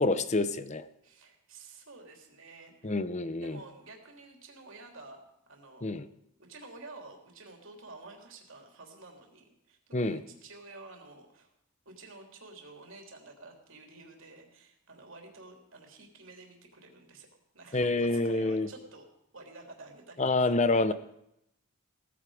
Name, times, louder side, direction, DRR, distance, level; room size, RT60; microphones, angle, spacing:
voice 1, 0.0-0.9 2.8-3.6 5.8-6.1 9.9-10.2 17.7-18.7 20.2-20.9, left 2 dB, 30° left, 0.7 m, -27 dB
voice 2, 1.0-2.9 3.4-5.2 5.5-5.9 6.4-11.5 11.8-17.3 17.5-19.0 19.3-20.9, right 3 dB, 60° right, 3.3 m, -50 dB
17.5 x 14.5 x 5.0 m
head